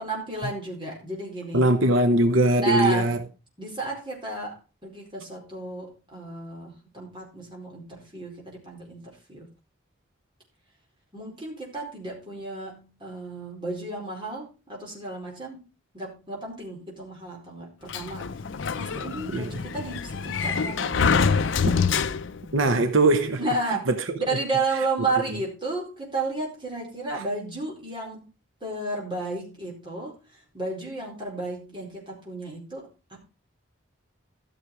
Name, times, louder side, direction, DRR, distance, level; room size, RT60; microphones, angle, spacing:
voice 1, 0.0-1.7 2.5-3.2 3.6-9.5 11.1-15.6 15.9-18.4 18.8-21.2 23.4-23.9 24.1-28.3 28.6-33.2, right 2 dB, 25° right, 4.6 m, -32 dB
voice 2, 1.5-3.2 19.3-19.5 22.5-23.4 23.9-24.2 27.1-27.2, right 1 dB, 80° right, 1.0 m, -21 dB
Sliding door, 17.9-22.6, left 5 dB, 70° left, 0.6 m, -25 dB
14.0 x 6.7 x 4.8 m
head